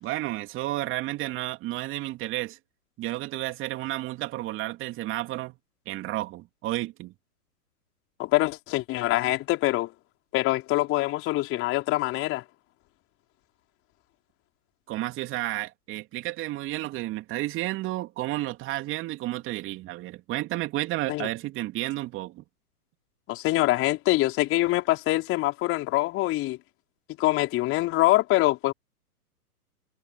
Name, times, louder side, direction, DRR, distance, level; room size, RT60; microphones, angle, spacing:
voice 1, 0.0-2.6 3.0-5.6 5.9-7.1 14.9-22.4, right 17 dB, 25° right, 3.0 m, -31 dB
voice 2, 8.2-9.9 10.3-12.4 21.1-21.3 23.3-26.6 27.2-28.7, left 18 dB, 25° left, 4.8 m, -24 dB
figure-of-eight pair, 120°, 47 cm